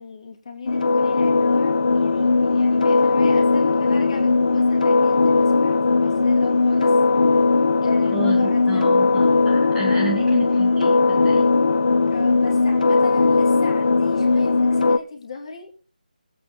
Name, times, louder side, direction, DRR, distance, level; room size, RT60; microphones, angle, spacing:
voice 1, 0.0-6.9 7.3-7.4 7.8-8.9 10.2-10.5 12.1-15.7, left 4 dB, 40° left, 2 dB, 2.5 m, -37 dB
sound 1, 0.7-15.0, left 3 dB, 60° left, 0.7 m, -18 dB
voice 2, 8.1-11.5, right 3 dB, 5° right, -2 dB, 2.2 m, -31 dB
20.0 x 8.4 x 3.5 m, 0.35 s
figure-of-eight pair, 165°, 5 cm